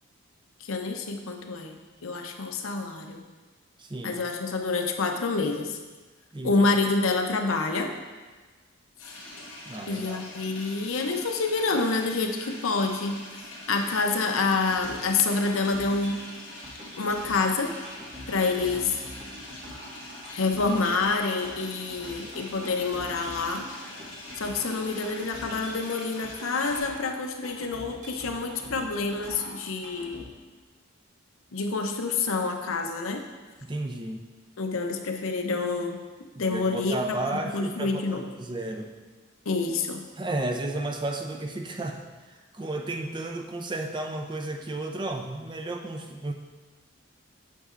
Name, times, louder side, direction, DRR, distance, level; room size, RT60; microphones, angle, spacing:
voice 1, 0.6-1.7 2.0-3.2 4.0-5.8 6.4-7.9 9.9-13.2 13.7-16.3 17.0-17.7 18.3-19.0 20.3-23.7 24.4-30.2 31.5-33.2 34.6-36.0 36.4-37.0 37.5-38.3 39.5-40.0, left 3 dB, 80° left, 4 dB, 0.7 m, -27 dB
voice 2, 3.8-4.2 6.3-6.7 9.7-10.3 33.6-34.3 36.3-39.0 40.2-46.3, right 2 dB, 20° right, 3 dB, 0.4 m, -33 dB
sound 1, 9.0-26.8, left 1 dB, 65° left, 2.0 m, -44 dB
sound 2, 13.7-30.2, equal, 40° right, 1.6 m, -45 dB
8.2 x 6.5 x 2.5 m, 1.3 s
head